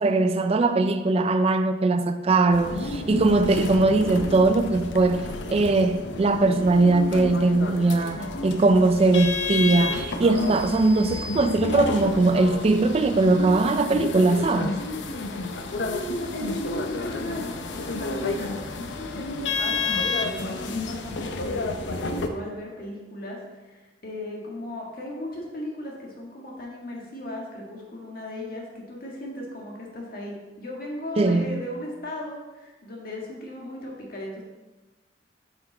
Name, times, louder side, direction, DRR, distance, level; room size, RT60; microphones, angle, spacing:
voice 1, 0.0-5.3 5.5-14.8 31.2-31.6, right 2 dB, 35° right, 0.3 m, -20 dB
sound 1, 2.5-22.3, left 3 dB, 90° left, 0.6 m, -31 dB
sound 2, 10.4-12.1, left 1 dB, 65° right, 1.9 m, -42 dB
voice 2, 15.7-34.4, left 1 dB, 55° left, 1.7 m, -37 dB
7.9 x 5.8 x 3.4 m
head